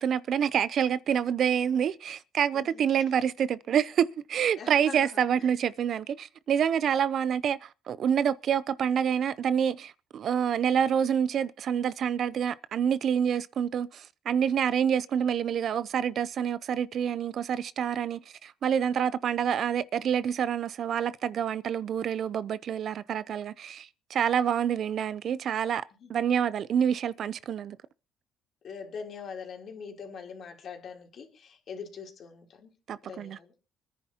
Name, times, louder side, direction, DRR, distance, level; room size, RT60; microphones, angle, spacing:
voice 1, 0.0-25.8 26.1-27.8 32.9-33.4, right 8 dB, 55° right, 0.6 m, -27 dB
voice 2, 4.6-5.2 26.0-26.1 28.6-32.7 33.0-33.5, left 6 dB, 50° left, 3.2 m, -42 dB
25.5 x 10.0 x 2.9 m
cardioid pair, 115°, 0 cm